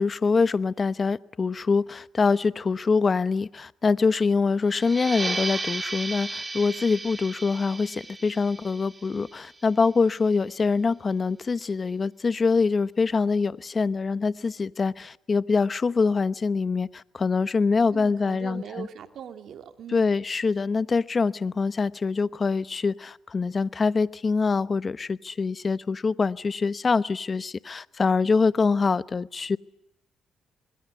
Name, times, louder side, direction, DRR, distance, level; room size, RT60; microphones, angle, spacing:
voice 1, 0.0-18.9 19.9-29.6, left 4 dB, 35° left, 16 dB, 1.0 m, -24 dB
sound 1, 4.7-10.0, right 3 dB, 20° right, 3.1 m, -35 dB
voice 2, 17.9-20.1, right 8 dB, 65° right, 8 dB, 2.6 m, -41 dB
26.5 x 21.5 x 9.5 m, 0.79 s
cardioid pair, 90°, 0 cm